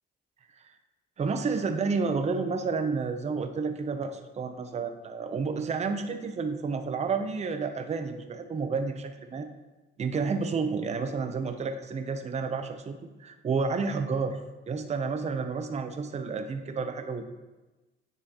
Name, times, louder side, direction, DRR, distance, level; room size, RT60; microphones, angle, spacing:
voice 1, 1.2-9.5 10.0-14.4 14.7-17.2, right 4 dB, 35° right, 7 dB, 0.6 m, -30 dB
9.8 x 5.5 x 2.9 m, 1.1 s
cardioid pair, 90°, 20 cm